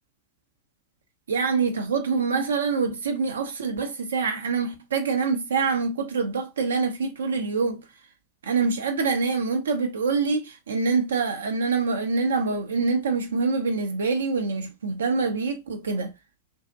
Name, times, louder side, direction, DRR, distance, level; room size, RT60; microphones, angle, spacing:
voice 1, 1.3-7.8 8.4-16.1, right 4 dB, 65° right, 0.5 m, -25 dB
2.6 x 2.4 x 2.2 m
figure-of-eight pair, 90°, 0 cm